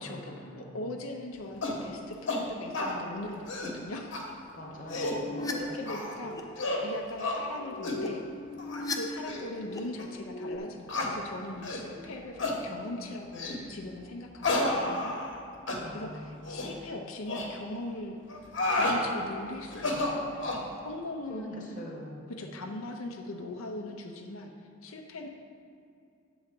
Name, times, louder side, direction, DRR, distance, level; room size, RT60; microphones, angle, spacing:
voice 1, 0.0-0.8 4.5-5.8 12.6-13.0 15.8-16.3 21.3-22.3, equal, 40° left, -2 dB, 1.1 m, -43 dB
voice 2, 0.6-4.3 4.9-5.2 5.5-8.3 8.9-15.2 15.9-18.3 18.7-20.5 20.8-21.6 22.3-24.5 24.8-25.3, left 2 dB, 85° left, 1 dB, 0.6 m, -40 dB
sound 1, 1.6-1.8 2.3-2.4 2.7-2.9 3.4-3.8 4.1-4.2 4.7-5.2 5.9-6.2 6.6-6.9 7.2-7.4 7.8-8.0 8.6-8.8 9.2-9.4 10.0-10.1 10.9-11.1 11.6-11.8 12.4-12.6 13.3-13.6 14.4-15.4 15.7-15.8 16.4-16.7 17.3-17.5 18.3-19.0 19.7-20.6, left 2 dB, 65° left, 1.1 m, -30 dB
sound 2, 4.9-5.5 5.9-6.4 7.4-9.0 9.2-9.8 10.1-10.6, left 2 dB, 15° left, 0.4 m, -38 dB
8.3 x 4.0 x 6.7 m, 2.5 s
head